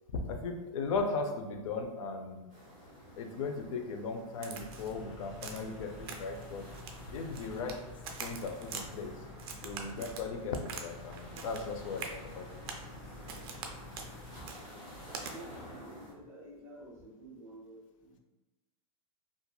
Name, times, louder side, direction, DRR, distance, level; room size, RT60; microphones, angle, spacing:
voice 1, 0.1-2.5 3.1-6.7 7.1-7.8 8.2-9.1 9.6-12.5, left 4 dB, 70° left, 5 dB, 0.5 m, -37 dB
sound 1, 2.5-16.1, equal, 20° left, 1.2 m, -52 dB
Crack, 4.4-5.0 5.4-5.7 6.1-6.4 6.7-7.8 8.0-8.9 9.4-10.9 11.1-11.7 12.0-12.2 12.7-12.9 13.3-13.7 14.0-14.1 14.5-14.6 15.1-15.3, right 5 dB, 45° right, 0.4 m, -43 dB
sound 2, 4.5-14.5, left 1 dB, 50° left, 1.2 m, -49 dB
voice 2, 15.3-18.2, right 1 dB, 25° right, -9 dB, 0.8 m, -50 dB
2.9 x 2.4 x 2.2 m, 1.1 s
supercardioid pair, 170°, 18 cm